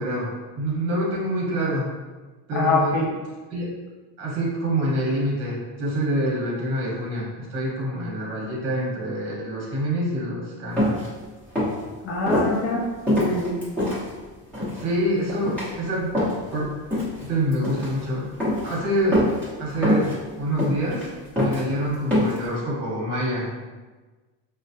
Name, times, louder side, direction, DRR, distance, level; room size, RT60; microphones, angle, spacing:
voice 1, 0.0-1.9 2.5-3.0 3.5-3.7 4.2-11.0 14.8-16.1 16.5-16.7 17.2-18.3 18.6-20.1 20.4-21.1 21.4-23.5, equal, 35° right, -4 dB, 1.1 m, -26 dB
voice 2, 2.5-3.1 12.0-12.8 13.1-13.5, left 2 dB, 30° left, -1 dB, 0.4 m, -24 dB
sound 1, 10.8-11.1 11.5-11.8 12.3-12.5 13.1-14.0 14.5-14.8 15.3-15.7 16.1-16.5 16.9-17.3 17.5-17.9 18.4-18.7 19.1-19.5 19.8-20.2 20.6-21.1 21.4-21.6 22.1-22.4, left 1 dB, 5° left, 0.9 m, -23 dB
4.9 x 2.1 x 2.7 m, 1.3 s
cardioid pair, 170°, 42 cm